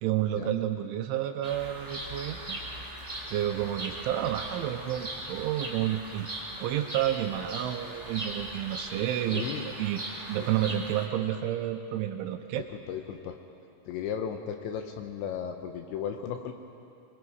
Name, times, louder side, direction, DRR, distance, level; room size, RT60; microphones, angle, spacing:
voice 1, 0.0-2.6 3.3-6.3 6.6-10.0 10.3-12.6, right 11 dB, 80° right, 6 dB, 2.9 m, -30 dB
Bird vocalization bird call bird song, 1.4-11.1, right 1 dB, 20° right, 1.1 m, -39 dB
sound 1, 1.5-8.8, left 1 dB, 60° left, 4.0 m, -51 dB
voice 2, 9.3-9.7 10.4-10.5 12.9-13.4 13.9-16.5, left 8 dB, 80° left, 5 dB, 2.8 m, -35 dB
26.0 x 21.5 x 4.7 m, 2.6 s
omnidirectional pair, 5.9 m